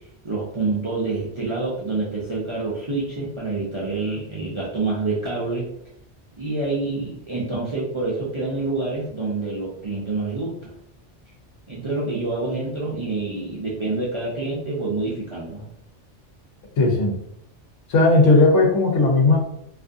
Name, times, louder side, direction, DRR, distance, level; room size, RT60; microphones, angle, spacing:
voice 1, 0.2-5.6 6.4-10.7 11.7-15.7, right 3 dB, 50° right, -6 dB, 0.3 m, -27 dB
voice 2, 16.8-17.1 17.9-19.4, left 2 dB, 85° left, 0 dB, 1.0 m, -16 dB
2.5 x 2.3 x 2.5 m, 0.75 s
omnidirectional pair, 1.2 m